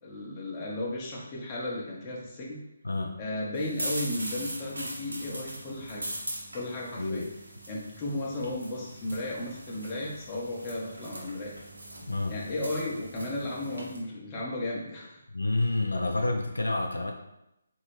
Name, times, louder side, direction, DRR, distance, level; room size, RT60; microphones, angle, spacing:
voice 1, 0.0-2.6 3.2-6.1 6.5-7.3 7.7-11.6 12.3-15.2, left 1 dB, 20° left, -4 dB, 0.7 m, -34 dB
voice 2, 2.8-3.2 7.0-7.3 12.0-12.4 15.3-17.1, left 2 dB, 70° left, 3 dB, 0.4 m, -29 dB
sound 1, 3.5-14.0, right 1 dB, 70° right, 1.1 m, -41 dB
4.0 x 2.7 x 3.1 m, 0.86 s
figure-of-eight pair, 145°, 0 cm